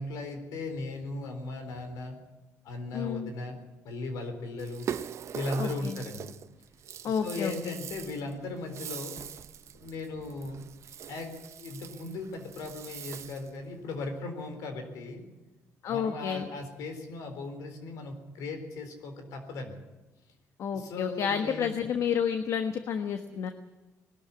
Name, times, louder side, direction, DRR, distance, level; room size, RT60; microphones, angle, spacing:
voice 1, 0.0-2.2 2.6-3.6 3.8-4.9 5.3-6.3 7.0-9.2 9.7-10.6 11.1-15.2 15.9-19.8 20.7-21.7, left 2 dB, 90° left, 6 dB, 4.1 m, -37 dB
voice 2, 2.9-3.3 5.6-6.0 7.0-7.8 15.8-16.5 20.6-23.5, left 7 dB, 65° left, 7 dB, 1.3 m, -30 dB
Rattle (instrument), 4.6-13.6, right 9 dB, 55° right, 0.7 m, -42 dB
20.5 x 13.0 x 9.9 m, 1.1 s
cardioid pair, 110°, 6 cm